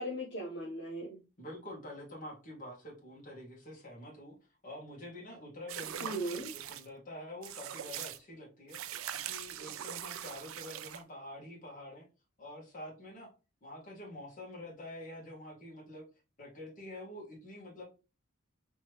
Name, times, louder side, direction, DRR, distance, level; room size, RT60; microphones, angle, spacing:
voice 1, 0.0-1.2 6.0-6.6, right 1 dB, 60° left, -4 dB, 1.2 m, -38 dB
voice 2, 1.4-4.3 4.6-6.4 6.7-8.8 9.3-12.0 12.4-13.3 13.6-16.0 16.4-17.8, left 1 dB, 40° left, -3 dB, 2.0 m, -47 dB
sound 1, 5.7-6.9 7.4-8.2 8.7-11.0, right 10 dB, 85° right, 0.4 m, -42 dB
4.3 x 3.1 x 3.1 m, 0.31 s
head